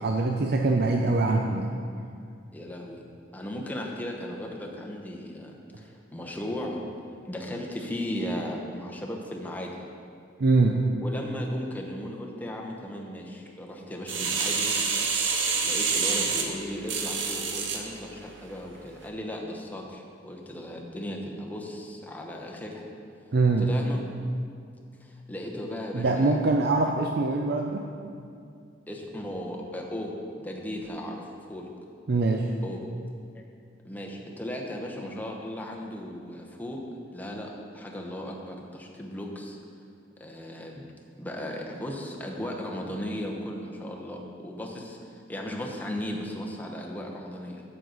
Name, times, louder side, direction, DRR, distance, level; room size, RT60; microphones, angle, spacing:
voice 1, 0.0-1.7 10.4-10.8 23.3-23.7 25.9-27.9 32.1-32.5, right 3 dB, 55° right, 2 dB, 0.5 m, -23 dB
voice 2, 2.5-3.0 3.3-6.8 7.2-9.8 11.0-14.7 15.6-22.8 23.6-24.0 25.0-26.5 28.9-31.7 32.6-32.8 33.3-33.4 33.8-36.8 37.1-39.6 40.2-40.8 41.2-47.6, left 1 dB, 10° left, -1 dB, 0.9 m, -36 dB
sound 1, 14.1-17.8 18.4-18.5, right 5 dB, 70° right, 0.9 m, -27 dB
9.2 x 8.0 x 3.9 m, 2.3 s
head